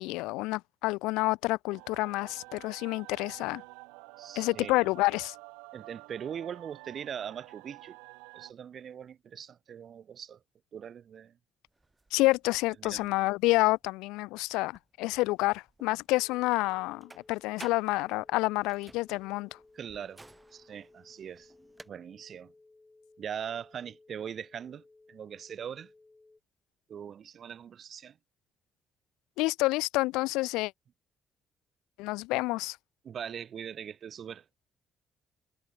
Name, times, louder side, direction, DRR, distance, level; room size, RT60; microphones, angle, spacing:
voice 1, 0.0-3.6 4.4-5.3 12.1-19.6 29.4-30.7 32.0-32.8, left 21 dB, 85° left, 0.7 m, -28 dB
sound 1, 1.7-8.5, right 31 dB, 90° right, 2.3 m, -50 dB
voice 2, 4.2-4.7 5.7-8.0 8.3-10.4 10.7-11.4 12.8-13.1 19.7-20.2 20.5-21.5 21.9-22.5 23.2-24.8 25.1-25.9 26.9-28.2 33.0-34.4, right 8 dB, 60° right, 2.1 m, -41 dB
sound 2, 11.7-21.9, right 2 dB, 20° right, 7.5 m, -56 dB
sound 3, 16.1-26.4, left 3 dB, 25° left, 8.0 m, -60 dB
supercardioid pair, 55°, 0 cm